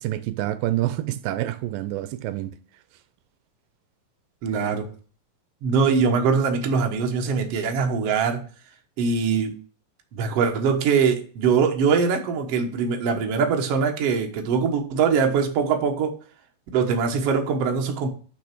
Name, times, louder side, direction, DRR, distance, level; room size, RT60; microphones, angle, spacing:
voice 1, 0.0-2.6, right 14 dB, 85° right, 2.3 m, -27 dB
voice 2, 4.4-4.9 5.6-8.4 9.0-9.5 10.1-16.1 16.7-18.1, right 5 dB, 60° right, 1.8 m, -22 dB
6.1 x 6.1 x 6.0 m
omnidirectional pair, 4.0 m